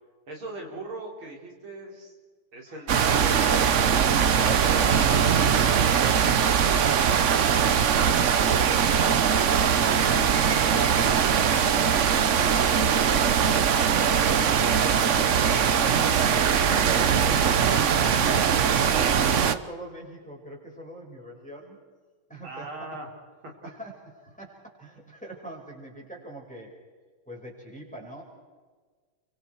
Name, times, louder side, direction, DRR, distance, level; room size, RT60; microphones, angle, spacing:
voice 1, 0.3-2.1 2.5-3.9 15.3-16.7 22.4-23.1, right 2 dB, 75° right, -1 dB, 4.9 m, -39 dB
voice 2, 2.7-3.0 18.9-21.8 22.3-22.9 23.6-26.7 27.3-28.2, right 2 dB, 5° left, -2 dB, 5.5 m, -42 dB
sound 1, 2.9-19.5, right 7 dB, 55° right, 0.8 m, -21 dB
29.5 x 25.0 x 4.6 m, 1.5 s
omnidirectional pair, 2.3 m